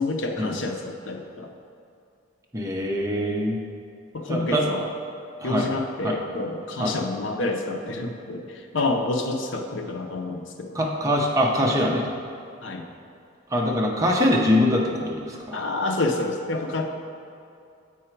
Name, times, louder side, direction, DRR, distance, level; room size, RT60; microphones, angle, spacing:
voice 1, 0.0-1.5 4.1-4.9 5.4-10.8 12.6-12.9 15.5-16.9, left 2 dB, 70° left, 4 dB, 0.6 m, -28 dB
voice 2, 2.5-3.6 4.3-4.6 5.4-5.7 6.0-6.2 6.8-7.0 10.7-12.1 13.5-15.6, left 1 dB, 15° right, -1 dB, 0.6 m, -23 dB
7.6 x 4.8 x 4.5 m, 2.4 s
head